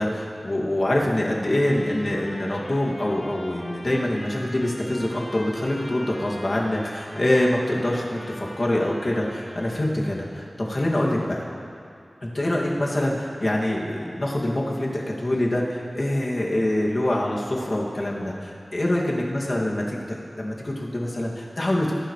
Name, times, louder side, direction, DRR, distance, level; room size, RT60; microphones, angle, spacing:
voice 1, 0.0-11.4 12.2-21.9, left 1 dB, 45° left, -4 dB, 2.4 m, -25 dB
Trumpet, 1.5-10.1, left 1 dB, 25° left, 3.5 m, -43 dB
23.0 x 11.5 x 3.3 m, 2.4 s
wide cardioid pair, 75°, 0 cm